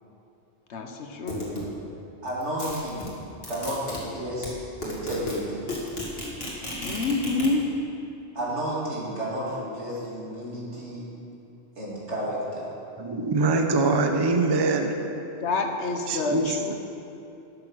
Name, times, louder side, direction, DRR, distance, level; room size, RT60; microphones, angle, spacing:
voice 1, 0.7-1.5 6.8-7.6 15.4-16.7, left 3 dB, 75° left, 4 dB, 1.2 m, -27 dB
sound 1, 1.3-1.7 2.3-4.0 4.4-4.5 4.8-5.3 5.6-7.5, left 1 dB, 60° left, 2.3 m, -33 dB
voice 2, 2.2-3.1 3.5-5.6 8.3-11.1 11.8-12.7, equal, 80° right, -6 dB, 2.9 m, -32 dB
voice 3, 13.0-14.9 16.1-16.7, right 3 dB, 25° right, 4 dB, 0.6 m, -23 dB
12.0 x 6.9 x 6.2 m, 2.8 s
omnidirectional pair, 1.2 m